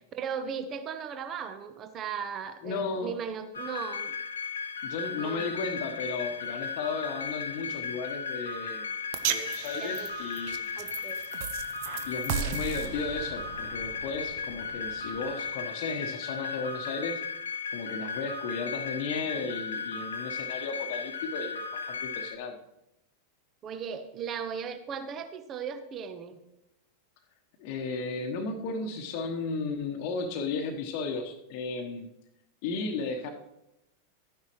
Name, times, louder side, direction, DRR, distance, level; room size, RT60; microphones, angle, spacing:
voice 1, 0.0-4.1 5.1-5.6 9.8-10.1 10.8-11.2 19.4-19.5 23.6-26.4, right 7 dB, 30° right, 9 dB, 0.9 m, -37 dB
voice 2, 2.6-3.1 4.8-9.0 9.3-10.7 12.0-17.2 17.7-22.6 27.6-32.1 32.6-33.3, left 4 dB, 45° left, 4 dB, 1.1 m, -34 dB
sound 1, 3.5-22.4, left 6 dB, 70° left, 1.0 m, -36 dB
sound 2, 9.1-15.5, right 10 dB, 50° right, 0.6 m, -37 dB
12.5 x 9.7 x 3.1 m, 0.87 s
figure-of-eight pair, 90°, 0 cm